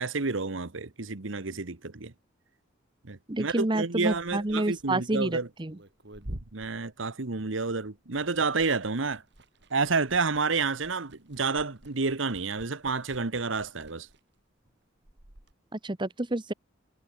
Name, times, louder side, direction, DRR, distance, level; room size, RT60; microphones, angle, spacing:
voice 1, 0.0-2.1 3.0-5.5 6.5-9.2 9.7-14.1, right 4 dB, 80° right, 1.3 m, -30 dB
voice 2, 3.3-5.8 15.7-16.5, right 2 dB, 25° right, 1.0 m, -29 dB
Liquid, 4.1-7.7 7.9-15.5, right 1 dB, 60° right, 2.7 m, -49 dB
head